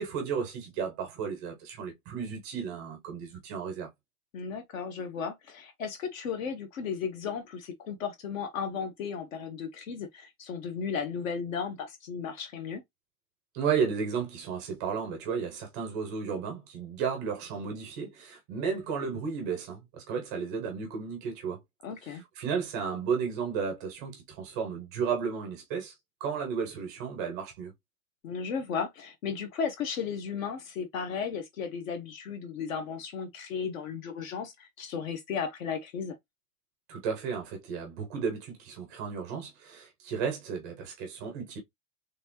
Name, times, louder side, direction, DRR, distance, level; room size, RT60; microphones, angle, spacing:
voice 1, 0.0-3.9 13.5-21.6 22.0-25.9 26.2-27.7 36.9-41.6, right 6 dB, 15° right, 0.4 m, -33 dB
voice 2, 4.3-12.8 21.8-22.2 28.2-36.1, left 6 dB, 60° left, 1.0 m, -35 dB
4.1 x 3.3 x 2.9 m
supercardioid pair, 170°, 44 cm